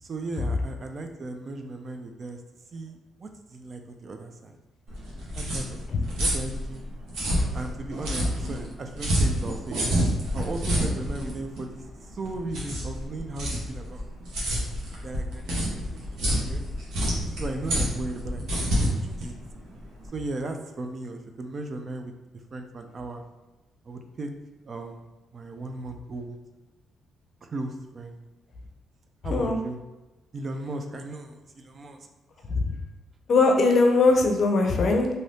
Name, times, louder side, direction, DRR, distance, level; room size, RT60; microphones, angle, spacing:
voice 1, 0.0-2.4 2.7-4.6 5.4-6.8 7.5-9.8 10.3-11.8 12.1-14.0 15.0-16.6 17.2-18.4 18.7-19.3 20.1-23.2 23.8-24.3 24.7-25.0 25.3-26.4 27.4-28.2 29.2-29.8 30.3-32.1, right 2 dB, 45° right, 5 dB, 0.4 m, -36 dB
sound 1, 4.9-20.1, equal, 85° right, 0.9 m, -28 dB
voice 2, 33.3-35.1, left 3 dB, 55° left, 3 dB, 0.5 m, -20 dB
2.7 x 2.6 x 3.3 m, 1.1 s
cardioid pair, 90°, 0 cm